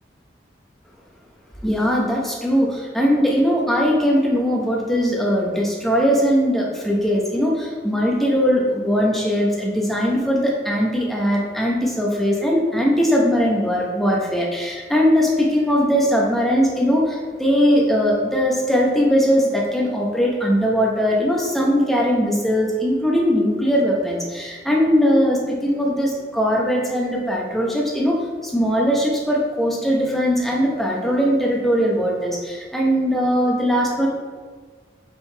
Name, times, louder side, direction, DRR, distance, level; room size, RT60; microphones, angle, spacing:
voice 1, 1.6-28.2 28.4-34.1, equal, ahead, -3 dB, 0.8 m, -20 dB
7.2 x 3.9 x 3.3 m, 1.5 s
head